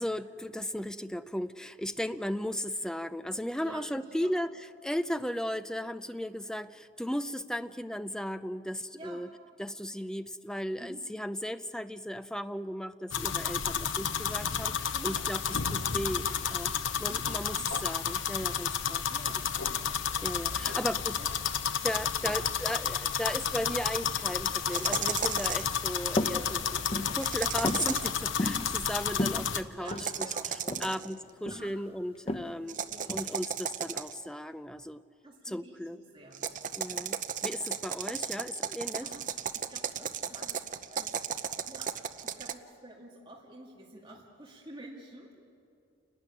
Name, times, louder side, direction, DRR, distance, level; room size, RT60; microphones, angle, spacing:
voice 1, 0.0-9.3 9.6-16.7 17.0-19.0 20.2-21.2 21.8-30.3 30.8-32.8 33.1-35.0 35.4-36.0 36.8-37.2 37.4-39.1, equal, 5° left, 11 dB, 0.5 m, -36 dB
voice 2, 3.6-4.4 8.9-9.2 10.8-11.0 14.9-15.2 17.0-17.2 17.5-17.7 19.1-19.8 20.5-20.9 21.2-21.3 22.2-22.4 29.7-31.0 31.5-31.7 32.9-33.1 35.2-36.5 36.8-37.1 39.0-41.2 41.7-41.9 42.2-45.4, right 1 dB, 25° right, -4 dB, 2.3 m, -50 dB
sound 1, 13.1-29.6, left 8 dB, 85° left, 0.8 m, -31 dB
sound 2, 24.7-25.8 27.2-28.2 29.9-31.1 32.7-34.3 36.3-42.5, right 7 dB, 40° right, 0.7 m, -35 dB
sound 3, 26.2-26.4 26.8-27.2 27.6-27.9 28.4-28.7 29.1-30.1 30.7-30.9 31.2-31.7 32.3-32.5 33.1-33.4, left 2 dB, 30° left, 0.9 m, -31 dB
29.5 x 12.5 x 9.9 m, 2.5 s
head